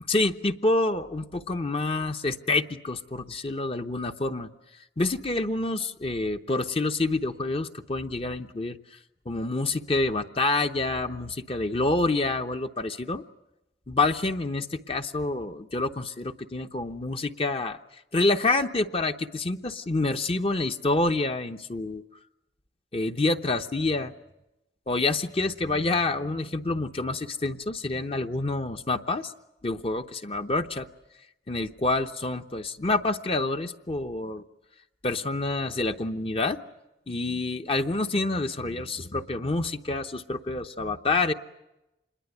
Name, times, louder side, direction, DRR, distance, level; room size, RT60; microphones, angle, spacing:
voice 1, 0.1-4.5 5.0-9.0 9.3-13.2 13.9-17.8 18.1-22.0 22.9-24.1 24.9-29.3 29.6-30.9 31.5-34.4 35.0-36.6 37.1-41.3, left 2 dB, 35° left, 7 dB, 0.8 m, -27 dB
27.0 x 21.5 x 8.0 m, 0.93 s
head